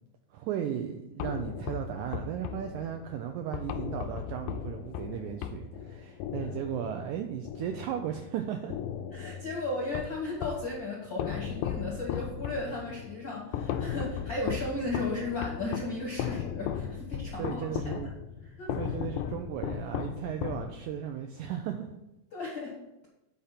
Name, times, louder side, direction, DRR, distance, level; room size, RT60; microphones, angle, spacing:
voice 1, 0.3-8.8 16.1-16.3 17.4-18.1 18.8-21.9, right 9 dB, 85° right, 5 dB, 1.7 m, -36 dB
sound 1, 1.2-8.3 8.7-10.7 11.2-21.1, left 9 dB, 80° left, 1.9 m, -36 dB
voice 2, 9.1-17.6 18.6-18.7 22.3-23.1, left 2 dB, 65° left, -2 dB, 1.1 m, -35 dB
8.5 x 4.3 x 5.8 m, 0.93 s
omnidirectional pair, 4.0 m